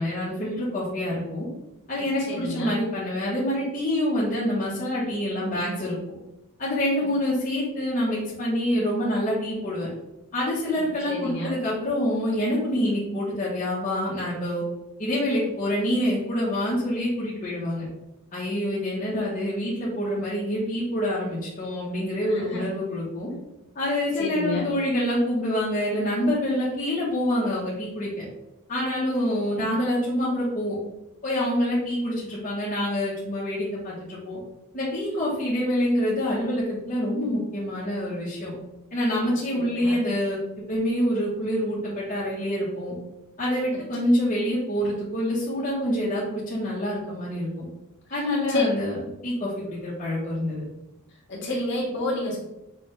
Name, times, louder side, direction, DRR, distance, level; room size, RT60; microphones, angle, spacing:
voice 1, 0.0-1.5 1.9-6.0 6.6-9.9 10.3-14.6 15.0-17.9 18.3-23.3 23.7-28.2 28.7-30.7 31.2-34.4 34.7-38.5 38.9-40.4 40.7-42.9 43.4-47.6 48.1-50.6, left 1 dB, 35° left, -8 dB, 1.1 m, -26 dB
voice 2, 2.3-2.7 10.8-11.5 22.2-22.6 24.1-24.7 29.6-29.7 38.7-38.8 39.5-40.0 48.5-48.7 51.3-52.4, left 2 dB, 55° left, -5 dB, 1.6 m, -29 dB
6.1 x 2.4 x 3.2 m, 0.90 s
head